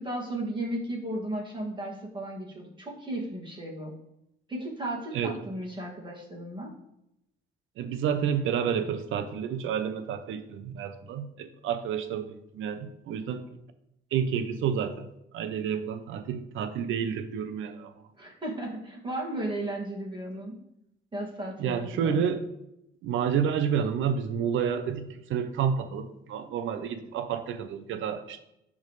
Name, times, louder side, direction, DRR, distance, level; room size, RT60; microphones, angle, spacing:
voice 1, 0.0-3.9 4.5-6.7 18.2-20.6 21.1-22.3, right 1 dB, 25° right, -3 dB, 2.2 m, -35 dB
voice 2, 7.8-13.4 14.1-15.1 15.3-17.9 21.6-22.4 23.0-28.4, right 7 dB, 80° right, 10 dB, 0.7 m, -30 dB
10.5 x 3.6 x 3.2 m, 0.82 s
cardioid pair, 90°, 20 cm